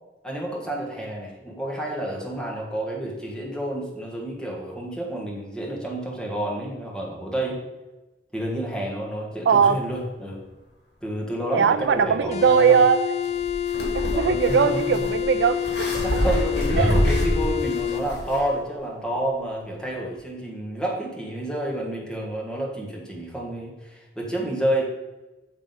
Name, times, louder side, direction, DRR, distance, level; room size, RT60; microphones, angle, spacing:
voice 1, 0.2-7.6 8.3-10.4 11.0-12.8 14.1-15.0 16.0-24.8, right 1 dB, 5° left, -2 dB, 1.5 m, -29 dB
voice 2, 9.5-9.8 11.5-13.0 13.9-16.2 16.8-17.0, right 7 dB, 70° right, 11 dB, 0.4 m, -20 dB
sound 1, 12.3-18.1, left 10 dB, 40° left, 0.5 m, -27 dB
sound 2, 13.2-18.4, equal, 80° left, 2.1 m, -26 dB
7.5 x 3.6 x 5.3 m, 1.1 s
head